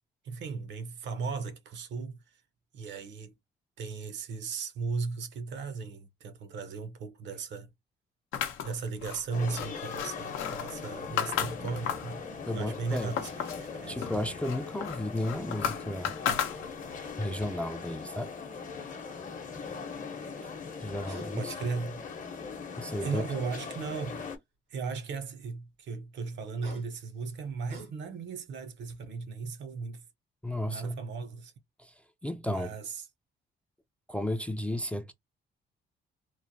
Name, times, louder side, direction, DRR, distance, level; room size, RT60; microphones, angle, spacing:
voice 1, 0.2-2.2 2.7-3.3 3.8-7.7 8.6-12.3 12.5-14.1 21.4-22.0 23.0-24.3 24.7-30.0 30.7-31.5 32.5-33.1, right 4 dB, 65° right, 0.6 m, -36 dB
sound 1, 8.3-12.2 12.6-13.7 14.0-17.0, left 8 dB, 85° left, 0.6 m, -34 dB
sound 2, 9.3-24.4, left 5 dB, 40° left, 0.7 m, -40 dB
voice 2, 12.5-13.1 13.9-16.1 17.2-18.3 20.8-21.5 22.8-23.2 30.4-30.9 31.8-31.9 32.2-32.7 34.1-35.1, left 1 dB, 5° left, 0.3 m, -33 dB
sound 3, 21.0-21.3 21.7-22.6 23.6-24.2 26.3-28.3 28.8-29.0, equal, 85° right, 1.5 m, -50 dB
3.0 x 2.0 x 2.6 m
cardioid pair, 90°, 20 cm